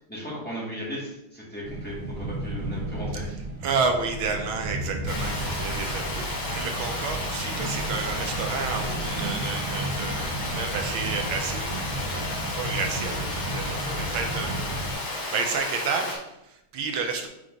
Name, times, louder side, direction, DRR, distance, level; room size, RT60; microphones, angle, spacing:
voice 1, 0.0-3.4, equal, 5° left, -7 dB, 2.0 m, -36 dB
sound 1, 1.6-14.9, right 1 dB, 50° right, 1.3 m, -33 dB
voice 2, 3.6-11.8 12.1-14.9 15.3-17.3, right 5 dB, 80° right, 4 dB, 1.6 m, -31 dB
Water, 5.1-16.2, left 2 dB, 75° left, 2.4 m, -32 dB
8.3 x 3.5 x 3.9 m, 0.87 s
omnidirectional pair, 2.2 m